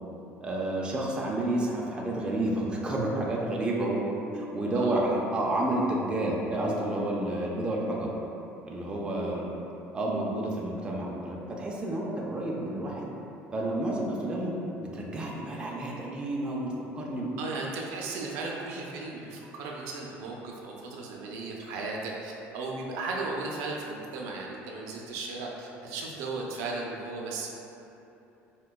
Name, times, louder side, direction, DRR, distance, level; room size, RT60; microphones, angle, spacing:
voice 1, 0.4-8.1 8.6-9.5 9.9-13.1 13.5-14.5 14.8-17.3, right 1 dB, 20° right, -3 dB, 0.4 m, -30 dB
voice 2, 17.4-27.5, right 3 dB, 80° right, -2 dB, 0.4 m, -36 dB
4.4 x 2.2 x 2.2 m, 3.0 s
cardioid pair, 130°, 5 cm